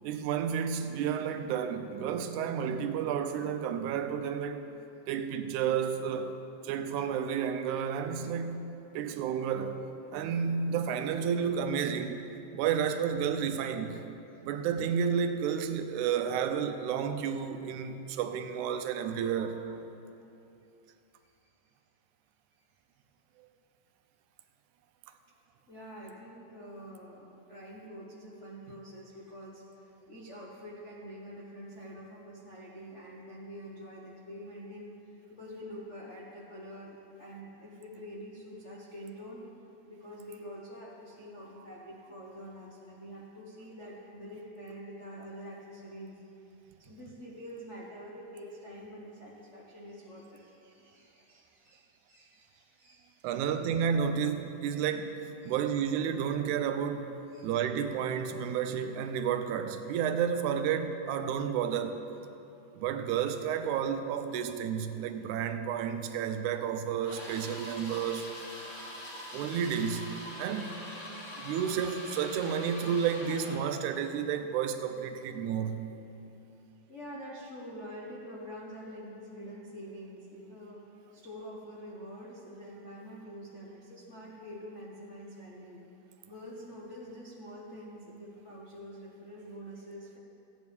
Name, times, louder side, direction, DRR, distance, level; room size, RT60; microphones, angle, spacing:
voice 1, 0.0-4.7 5.1-6.3 6.6-9.8 10.1-12.2 12.5-14.0 14.4-19.8 53.2-57.2 57.4-62.0 62.7-68.3 69.3-70.1 70.4-70.8 71.4-75.8, right 7 dB, 85° right, 2.1 m, -31 dB
voice 2, 25.7-39.4 39.8-46.2 46.6-53.5 54.7-54.8 55.4-55.5 57.3-57.5 76.9-80.8 81.1-85.8 86.3-90.2, equal, 70° left, 0.6 m, -46 dB
sound 1, 67.0-73.7, left 1 dB, 35° left, 1.7 m, -43 dB
15.0 x 9.4 x 3.5 m
omnidirectional pair, 3.4 m